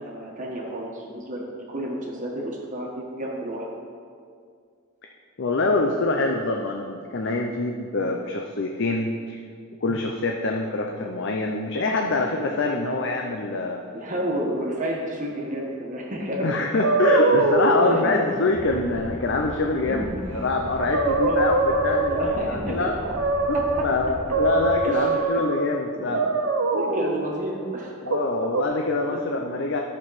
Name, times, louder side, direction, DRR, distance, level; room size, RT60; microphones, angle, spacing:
voice 1, 0.0-3.7 12.8-13.0 13.9-16.5 17.8-18.1 19.8-20.1 21.0-21.5 22.1-23.1 23.5-23.8 24.8-25.1 26.0-26.1 26.7-27.9 29.1-29.2, right 1 dB, 40° right, -2 dB, 1.4 m, -31 dB
voice 2, 5.4-9.4 9.8-13.8 16.4-20.1 20.4-22.9 23.5-23.6 23.8-26.3 28.0-29.8, left 3 dB, 60° left, 2 dB, 0.6 m, -25 dB
sound 1, 16.8-17.9 20.4-20.5 20.8-22.5 23.0-23.9 24.3-25.6 26.1-27.2 28.1-28.6, right 3 dB, 75° right, 0.8 m, -23 dB
sound 2, 18.5-24.8, equal, 30° left, 1.2 m, -37 dB
11.5 x 6.8 x 4.1 m, 2.2 s
head